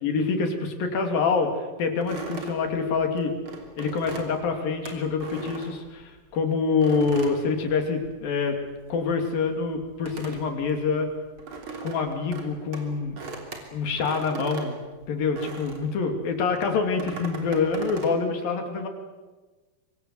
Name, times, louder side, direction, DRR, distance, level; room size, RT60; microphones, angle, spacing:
voice 1, 0.0-3.3 3.8-8.6 8.9-11.1 11.8-13.2 13.7-14.8 15.1-18.9, left 4 dB, 75° left, 5 dB, 4.6 m, -26 dB
sound 1, 2.0-6.3 6.8-8.3 8.6-15.9 16.5-18.2, right 4 dB, 35° right, 3.9 m, -39 dB
25.5 x 24.0 x 7.8 m, 1.2 s
omnidirectional pair, 4.1 m